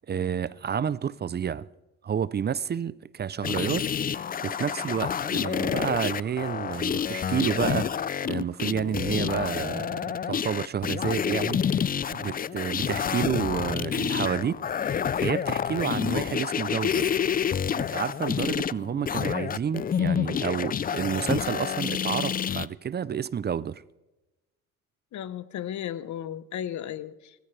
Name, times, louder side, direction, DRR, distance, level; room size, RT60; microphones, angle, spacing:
voice 1, 0.1-1.7 2.0-3.9 4.4-8.0 8.2-14.6 15.2-17.1 17.8-23.8, right 8 dB, 35° right, 0.5 m, -30 dB
sound 1, 3.4-22.7, left 8 dB, 30° left, 0.4 m, -28 dB
sound 2, 4.5-8.8, right 6 dB, 55° right, 2.4 m, -50 dB
voice 2, 25.1-27.3, left 10 dB, 70° left, 0.9 m, -35 dB
19.5 x 14.5 x 3.3 m
cardioid pair, 90°, 30 cm